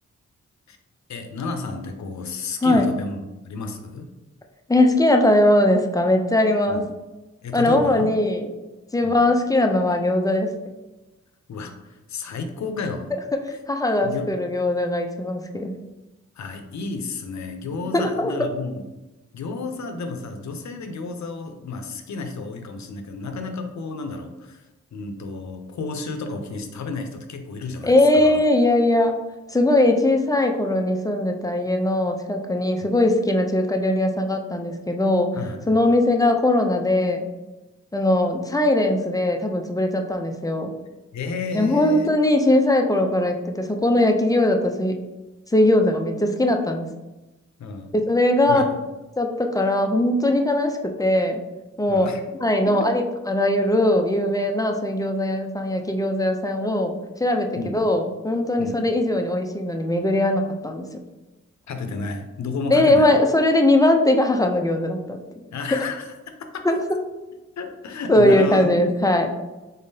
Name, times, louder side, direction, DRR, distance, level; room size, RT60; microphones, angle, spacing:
voice 1, 1.1-4.1 6.7-6.9 7.4-8.1 9.0-9.2 11.5-13.1 14.0-14.3 16.4-18.8 19.3-28.4 35.3-36.0 41.1-42.1 47.6-47.9 48.5-48.7 51.9-52.2 52.7-52.9 57.6-57.8 58.6-58.8 61.7-63.1 65.5-66.7 67.6-68.9, left 3 dB, 70° left, 6 dB, 0.6 m, -32 dB
voice 2, 4.7-6.8 7.5-8.5 8.9-10.5 13.7-15.7 17.9-18.3 27.8-29.1 29.5-35.3 35.7-37.3 37.9-40.7 41.5-44.9 45.5-46.9 47.9-48.6 49.2-51.4 51.8-52.1 52.4-60.9 62.7-65.2 66.7-66.8 68.1-69.3, left 1 dB, 10° left, 3 dB, 0.5 m, -20 dB
3.8 x 3.6 x 2.7 m, 1.1 s
cardioid pair, 65°, 29 cm